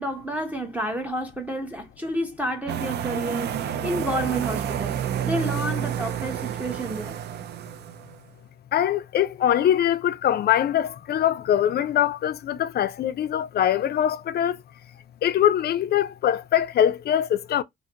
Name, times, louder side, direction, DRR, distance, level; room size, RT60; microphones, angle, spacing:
voice 1, 0.0-4.9 5.2-7.2, right 1 dB, 5° right, 0.6 m, -30 dB
sound 1, 2.7-8.2, right 9 dB, 55° right, 0.4 m, -29 dB
voice 2, 8.7-14.6 15.2-17.6, left 10 dB, 55° left, 0.4 m, -23 dB
2.5 x 2.5 x 2.7 m
cardioid pair, 90°, 20 cm